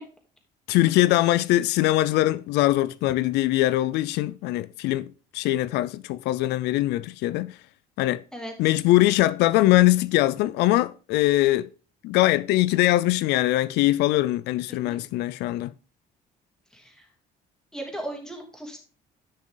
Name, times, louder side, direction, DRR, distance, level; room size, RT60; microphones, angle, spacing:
voice 1, 0.7-7.6 8.0-8.2 8.6-11.7 12.0-15.7, left 16 dB, 85° left, 0.4 m, -22 dB
voice 2, 14.7-15.0 16.7-17.1 17.7-18.8, right 1 dB, 5° left, 3.0 m, -37 dB
10.5 x 6.2 x 3.9 m
cardioid pair, 110°, 17 cm